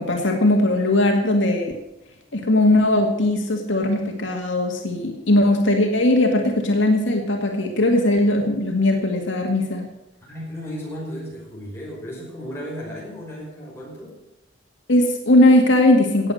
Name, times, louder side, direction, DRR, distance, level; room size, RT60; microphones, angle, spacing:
voice 1, 0.0-1.7 2.3-9.8 14.9-16.3, left 1 dB, 75° left, 2 dB, 2.1 m, -19 dB
voice 2, 10.3-14.2, equal, 15° left, -4 dB, 5.4 m, -34 dB
17.5 x 8.2 x 6.4 m, 0.89 s
head